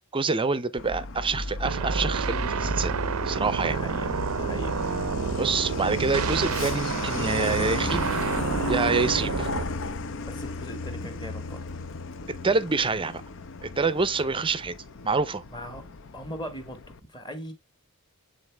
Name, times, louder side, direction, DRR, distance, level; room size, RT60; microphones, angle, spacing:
voice 1, 0.1-3.0 3.3-3.8 5.4-8.0 8.7-9.5 12.4-13.2 13.6-14.7 15.0-15.4, right 4 dB, 25° right, 0.5 m, -26 dB
Truck, 0.8-17.0, left 3 dB, 60° left, 0.7 m, -34 dB
sound 1, 1.6-9.6, right 6 dB, 75° right, 0.5 m, -29 dB
voice 2, 3.7-4.8 10.3-11.6 15.5-15.8 16.1-16.8 17.1-17.5, equal, 20° left, 1.6 m, -39 dB
8.5 x 4.0 x 3.4 m
head